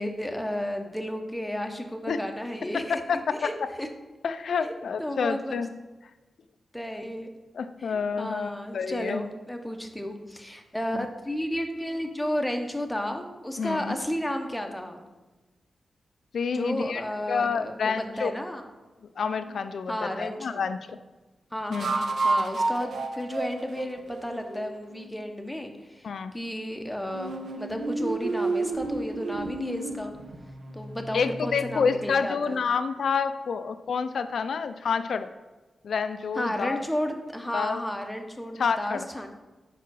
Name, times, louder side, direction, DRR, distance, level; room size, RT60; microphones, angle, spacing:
voice 1, 0.0-3.5 3.8-3.9 4.6-4.7 5.0-5.6 6.7-7.3 7.8-15.0 16.5-18.7 19.9-20.7 21.5-30.1 30.7-32.6 36.3-39.3, equal, 5° left, 4 dB, 0.7 m, -33 dB
voice 2, 2.7-3.4 4.2-5.7 7.5-9.2 10.9-11.1 13.6-14.0 16.3-17.0 17.3-18.3 19.2-20.8 21.7-21.9 26.0-26.3 31.1-35.3 35.8-36.8 37.5-37.8 38.6-39.1, left 5 dB, 65° left, 10 dB, 0.4 m, -28 dB
sound 1, 19.4-19.5 21.7-25.1 27.1-31.9, right 3 dB, 65° right, 0.7 m, -31 dB
4.9 x 4.7 x 6.1 m, 1.2 s
wide cardioid pair, 160°, 0 cm